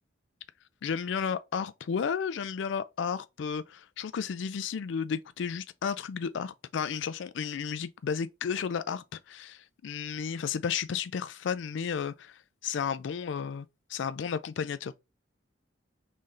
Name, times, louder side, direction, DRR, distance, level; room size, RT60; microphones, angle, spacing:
voice 1, 0.8-14.9, left 6 dB, 70° left, 0.4 m, -33 dB
3.8 x 3.2 x 2.6 m
head